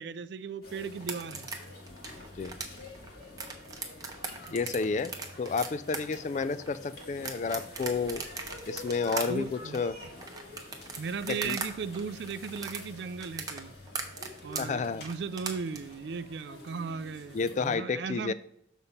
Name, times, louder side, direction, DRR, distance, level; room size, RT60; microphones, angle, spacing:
voice 1, 0.0-1.5 2.2-2.3 4.5-4.6 4.8-5.1 9.1-9.8 11.0-13.7 14.4-18.3, right 5 dB, 65° right, 0.4 m, -37 dB
sound 1, 0.6-17.8, left 2 dB, 55° left, 1.7 m, -48 dB
sound 2, 1.0-11.7 11.9-15.8, right 4 dB, 20° right, 0.8 m, -38 dB
voice 2, 4.5-5.1 5.4-8.2 8.7-10.0 11.4-11.6 14.6-15.0 17.3-18.3, left 4 dB, 40° left, 0.3 m, -31 dB
6.9 x 4.1 x 5.4 m
head